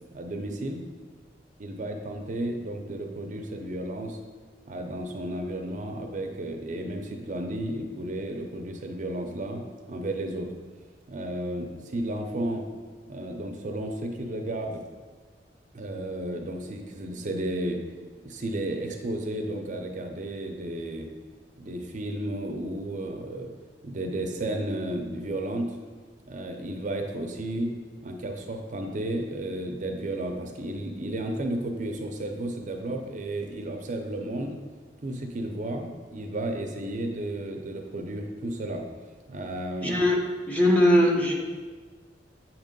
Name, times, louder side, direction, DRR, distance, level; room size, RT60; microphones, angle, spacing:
voice 1, 0.1-0.8 1.6-4.2 4.7-9.6 9.9-10.5 11.1-12.6 13.1-14.8 15.7-17.8 18.2-21.1 21.6-23.5 23.8-25.8 26.2-27.7 28.0-34.6 35.0-38.8 39.3-39.9, right 1 dB, 45° right, 3 dB, 0.5 m, -33 dB
voice 2, 39.8-41.3, left 1 dB, 10° left, -3 dB, 0.9 m, -21 dB
8.1 x 2.9 x 5.2 m, 1.4 s
head